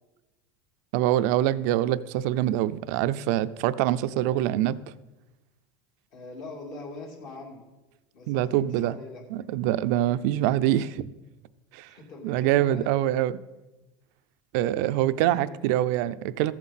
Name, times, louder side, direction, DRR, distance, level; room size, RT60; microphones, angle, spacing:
voice 1, 0.9-4.8 8.3-8.9 9.3-11.1 11.7-11.9 12.2-13.3 14.5-16.5, right 13 dB, 70° right, 14 dB, 0.4 m, -24 dB
voice 2, 6.1-7.6 8.1-9.2 11.9-13.1 15.3-15.7, left 3 dB, 55° left, -2 dB, 2.5 m, -42 dB
14.0 x 7.4 x 4.2 m, 1.0 s
supercardioid pair, 120°, 10 cm